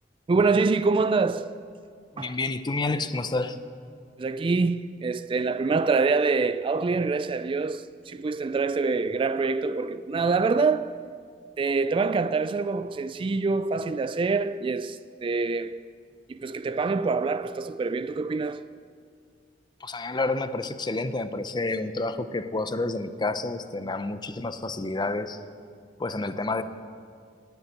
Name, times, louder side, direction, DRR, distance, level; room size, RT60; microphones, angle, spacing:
voice 1, 0.3-1.6 2.2-2.4 4.2-11.0 11.6-15.9 16.3-18.7, right 4 dB, 30° right, 0.3 m, -25 dB
voice 2, 2.1-3.6 19.8-25.4 26.0-26.6, left 2 dB, 25° left, 0.6 m, -29 dB
19.0 x 7.0 x 9.4 m
head